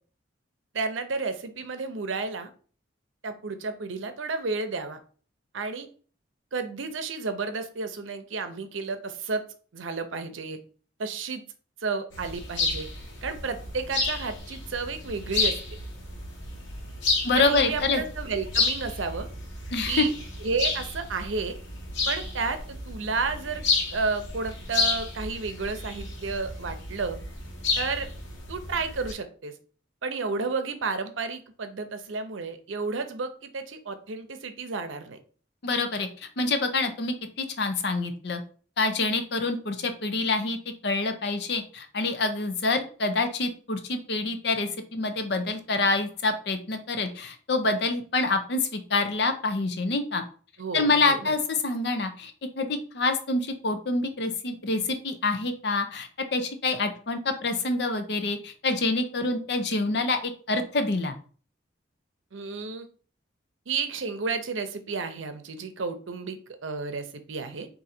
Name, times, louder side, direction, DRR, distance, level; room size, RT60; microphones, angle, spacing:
voice 1, 0.7-2.5 3.2-5.0 5.5-5.9 6.5-9.4 9.7-10.6 11.0-11.4 11.8-12.9 13.2-15.6 17.3-19.3 19.8-20.1 20.4-21.6 22.1-22.6 22.9-23.6 23.9-27.2 27.8-28.1 28.5-29.5 30.0-35.2 50.6-51.3 62.3-62.9 63.7-67.7, right 4 dB, 80° right, 8 dB, 0.6 m, -31 dB
sound 1, 12.1-29.1, left 3 dB, 75° left, 1.2 m, -31 dB
voice 2, 17.2-18.0 19.7-20.1 35.6-36.1 36.4-38.4 38.8-40.6 40.8-50.2 50.7-61.1, left 3 dB, 55° left, 8 dB, 0.6 m, -26 dB
3.8 x 2.7 x 4.3 m, 0.41 s
head